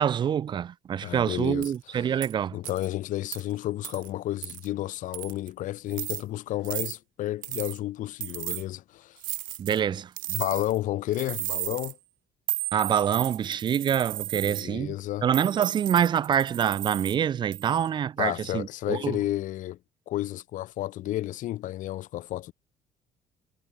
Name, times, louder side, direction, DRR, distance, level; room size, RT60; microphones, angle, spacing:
voice 1, 0.0-2.6 9.6-10.1 12.7-14.9 15.2-19.2, right 8 dB, 30° right, 0.6 m, -26 dB
voice 2, 1.0-1.7 2.5-9.2 10.3-12.0 14.4-15.3 18.2-19.8 20.1-22.5, left 14 dB, 65° left, 4.0 m, -31 dB
sound 1, 1.6-1.8 2.2-2.3 2.6-2.9 3.3-3.4 3.8-4.1 4.4-4.7 5.1-5.5 5.9-6.2 6.6-6.9 7.4-7.8 8.2-8.6 9.2-9.8 10.2-10.8 11.1-11.9 12.5-14.6 15.3-17.2 17.5-17.9, right 17 dB, 75° right, 0.8 m, -34 dB
cardioid pair, 170°, 14 cm